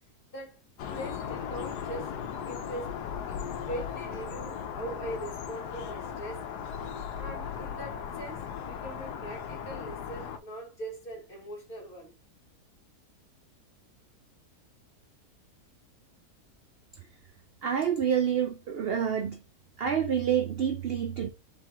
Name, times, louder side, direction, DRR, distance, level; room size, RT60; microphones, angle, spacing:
sound 1, 0.8-10.4, left 7 dB, 85° left, 1.2 m, -37 dB
voice 1, 0.9-2.1 2.5-3.4 3.7-6.8 7.2-12.1, right 1 dB, 40° left, 1.3 m, -41 dB
voice 2, 17.6-19.4 19.8-21.3, right 8 dB, 75° right, 0.5 m, -28 dB
4.3 x 3.3 x 3.5 m
omnidirectional pair, 1.7 m